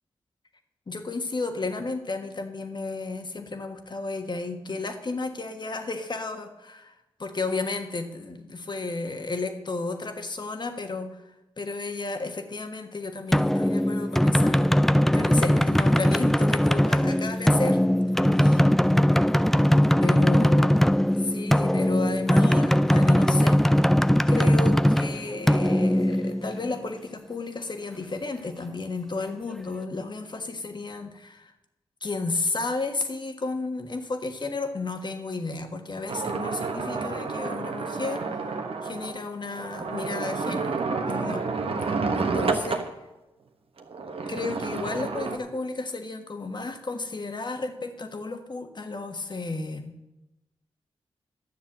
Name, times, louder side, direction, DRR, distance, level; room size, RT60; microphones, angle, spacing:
voice 1, 0.9-14.7 15.1-17.8 18.4-18.6 20.0-20.7 21.2-23.9 24.3-31.5 32.0-38.2 38.8-41.4 41.9-42.9 44.3-50.0, left 3 dB, 45° left, 6 dB, 1.4 m, -33 dB
sound 1, 13.3-26.9, equal, 5° left, 0.4 m, -20 dB
sound 2, 36.1-42.9 43.8-45.4, right 4 dB, 65° right, 1.3 m, -30 dB
11.0 x 7.1 x 7.3 m, 1.0 s
supercardioid pair, 40°, 10 cm